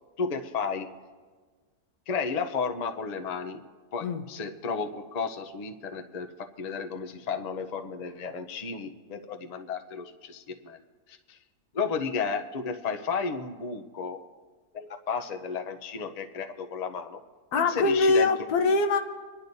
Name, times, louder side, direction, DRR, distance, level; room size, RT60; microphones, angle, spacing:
voice 1, 0.2-0.9 2.1-3.6 3.9-6.3 6.6-10.8 11.1-11.4 11.7-14.2 14.7-17.2 17.6-18.3 18.6-18.7, left 5 dB, 50° left, 6 dB, 0.4 m, -33 dB
voice 2, 17.5-19.0, left 3 dB, 75° left, 7 dB, 1.3 m, -23 dB
26.5 x 11.0 x 2.7 m, 1.4 s
omnidirectional pair, 1.7 m